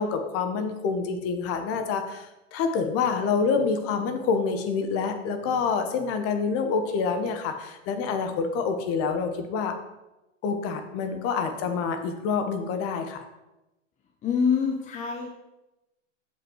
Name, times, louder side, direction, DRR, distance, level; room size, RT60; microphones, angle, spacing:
voice 1, 0.0-9.8 10.4-13.2, left 5 dB, 35° left, 7 dB, 1.0 m, -27 dB
voice 2, 14.2-15.3, left 6 dB, 20° left, 3 dB, 0.7 m, -25 dB
7.2 x 5.5 x 4.4 m, 0.99 s
hypercardioid pair, 115°, 39 cm